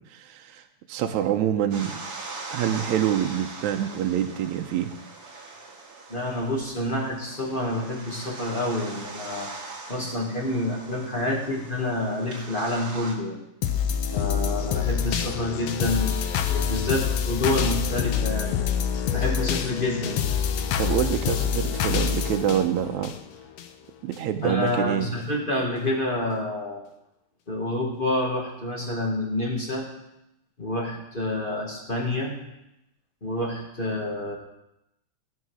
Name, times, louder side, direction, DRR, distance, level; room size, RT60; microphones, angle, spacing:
voice 1, 0.1-0.6 0.9-2.0 2.5-4.9 20.8-23.1 24.0-25.1, right 10 dB, 80° right, 6 dB, 2.1 m, -26 dB
sound 1, 1.7-13.2, right 3 dB, 45° right, 3.0 m, -41 dB
voice 2, 6.1-9.5 9.9-13.4 14.1-16.2 16.5-18.7 19.1-20.3 24.4-26.8 27.5-29.9 30.6-32.4 33.2-34.4, left 1 dB, 20° left, -2 dB, 1.5 m, -28 dB
sound 2, 13.6-23.7 24.1-24.2, left 8 dB, 70° left, 1.8 m, -26 dB
16.5 x 5.8 x 6.3 m, 0.87 s
omnidirectional pair, 3.3 m